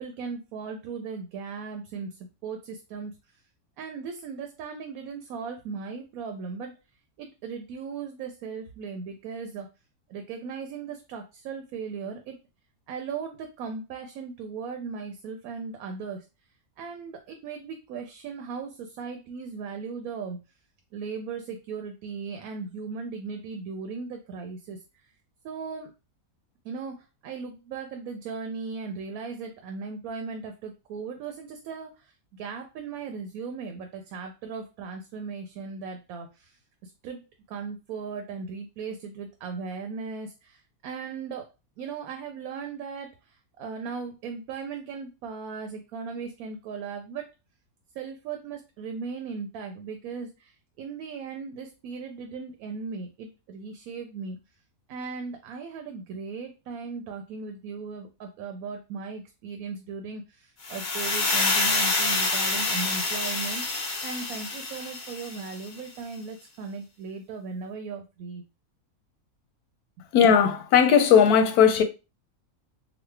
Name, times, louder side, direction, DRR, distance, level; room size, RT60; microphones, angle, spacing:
voice 1, 0.0-3.2 3.8-6.8 7.2-9.7 10.1-12.3 12.9-16.2 16.8-20.4 20.9-25.1 25.4-25.9 26.6-37.2 37.5-41.5 41.8-47.2 47.9-54.4 54.9-68.4, right 5 dB, 75° right, 1.0 m, -37 dB
sound 1, 60.6-65.7, left 3 dB, 45° left, 0.7 m, -27 dB
voice 2, 70.1-71.8, left 7 dB, 90° left, 1.1 m, -18 dB
3.1 x 2.3 x 3.2 m
omnidirectional pair, 1.5 m